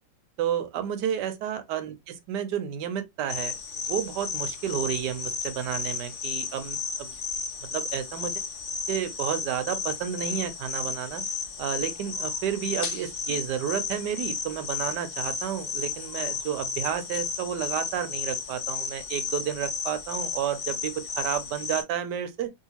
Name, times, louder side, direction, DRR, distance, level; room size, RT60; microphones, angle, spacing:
voice 1, 0.4-3.6 3.9-7.1 7.7-8.3 8.9-11.2 11.6-22.5, right 9 dB, 75° right, 1.2 m, -31 dB
sound 1, 3.3-21.8, left 5 dB, 80° left, 0.5 m, -33 dB
3.0 x 2.7 x 2.8 m
omnidirectional pair, 2.0 m